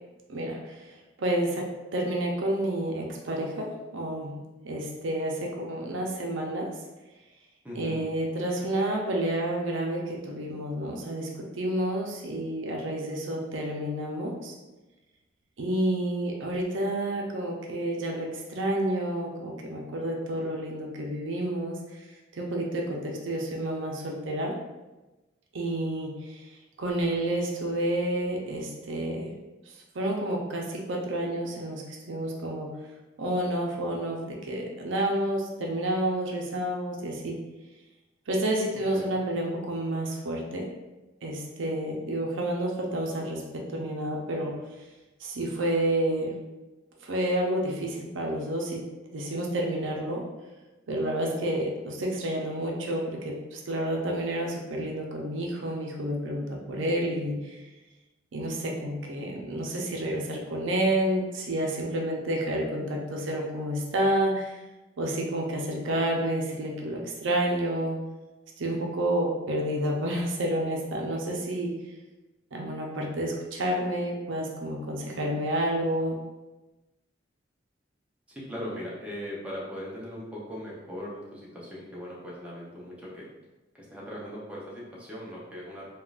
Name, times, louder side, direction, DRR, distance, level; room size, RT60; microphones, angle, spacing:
voice 1, 0.3-0.7 1.2-1.7 1.9-4.4 4.6-6.7 7.8-11.3 11.5-14.5 15.6-21.8 22.3-24.6 25.5-26.4 26.8-29.3 29.9-32.7 33.2-37.4 38.3-40.7 41.2-44.5 45.2-46.3 47.0-48.8 49.1-50.2 50.9-57.6 58.3-64.6 65.0-68.0 68.6-71.7 72.5-76.2, right 1 dB, 85° right, 0 dB, 0.6 m, -29 dB
voice 2, 7.6-8.0 38.9-39.2 78.3-83.2 83.7-85.9, equal, 5° right, -6 dB, 0.6 m, -39 dB
3.5 x 2.3 x 2.4 m, 1.1 s
head